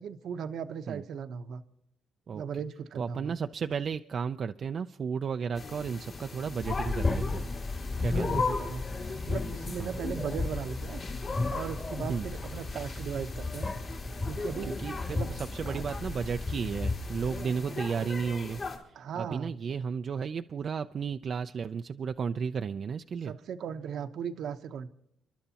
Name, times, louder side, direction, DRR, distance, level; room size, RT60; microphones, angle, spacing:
voice 1, 0.0-1.6 2.3-3.3 8.1-11.0 11.5-13.7 14.2-14.8 15.1-15.4 15.7-15.8 17.6-17.7 18.9-19.5 23.2-24.9, right 7 dB, 70° right, 10 dB, 0.9 m, -38 dB
voice 2, 2.3-2.6 2.9-7.5 8.0-8.4 9.8-10.0 12.1-12.3 14.8-18.6 18.9-23.3, right 6 dB, 50° right, 7 dB, 0.4 m, -33 dB
sound 1, 5.5-18.8, left 4 dB, 50° left, 3.4 m, -39 dB
sound 2, 6.6-17.4, left 3 dB, 35° left, 2.4 m, -34 dB
30.0 x 11.5 x 2.9 m, 0.75 s
cardioid pair, 90°, 0 cm